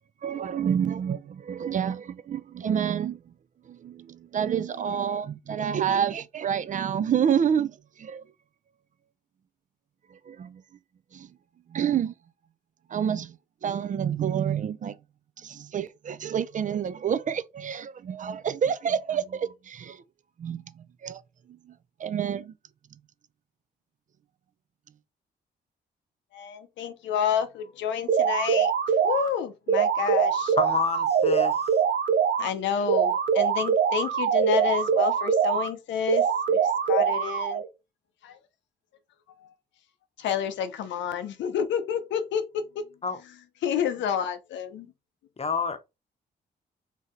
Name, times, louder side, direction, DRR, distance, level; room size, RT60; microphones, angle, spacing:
voice 1, 0.2-3.2 3.8-4.1 4.3-7.7 8.0-8.2 10.3-10.6 11.1-11.3 11.7-12.1 12.9-13.3 13.6-14.9 15.4-20.0 20.4-20.6 21.0-21.2 22.0-22.5, right 8 dB, 45° right, 0.4 m, -28 dB
voice 2, 26.3-28.7 29.0-30.6 32.4-36.2 36.5-36.6 36.9-37.6 38.2-38.3 40.2-42.6 43.6-44.9, left 8 dB, 85° left, 0.6 m, -29 dB
sound 1, 28.1-29.3 29.7-32.5 32.9-35.7 36.1-37.7, right 7 dB, 80° right, 0.7 m, -23 dB
voice 3, 30.6-31.6 43.0-43.2 45.4-45.8, left 5 dB, 35° left, 0.8 m, -28 dB
3.2 x 2.7 x 3.7 m
cardioid pair, 65°, 18 cm